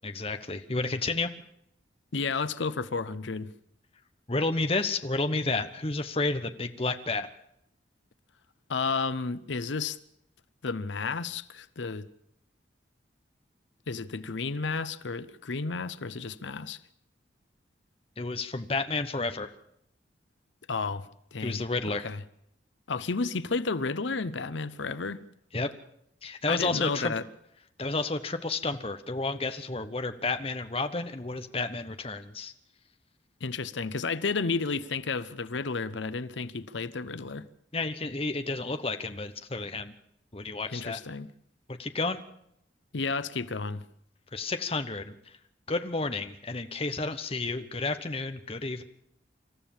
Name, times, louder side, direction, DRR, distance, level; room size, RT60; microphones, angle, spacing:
voice 1, 0.0-1.3 4.3-7.3 18.2-19.5 21.4-22.1 25.5-25.7 26.2-27.1 27.8-32.5 37.7-39.9 40.3-41.0 41.7-42.2 44.3-45.2 45.7-48.8, left 3 dB, 30° left, 1.0 m, -31 dB
voice 2, 2.1-3.5 8.7-10.0 10.6-12.0 13.9-16.8 20.7-21.6 21.9-22.2 22.9-25.2 26.5-27.2 33.4-37.5 40.7-41.3 42.9-43.8, left 4 dB, 80° left, 0.7 m, -32 dB
26.5 x 13.5 x 7.3 m
head